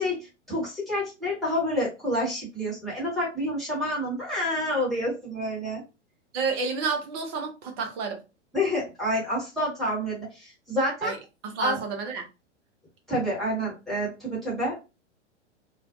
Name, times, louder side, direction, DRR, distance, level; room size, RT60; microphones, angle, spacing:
voice 1, 0.0-5.8 8.5-11.1 11.6-11.8 13.1-14.8, equal, ahead, 1.2 m, -28 dB
voice 2, 6.3-8.2 11.0-11.2 11.4-12.3, right 5 dB, 20° right, 0.4 m, -30 dB
2.4 x 2.2 x 2.4 m
figure-of-eight pair, 105°, 36 cm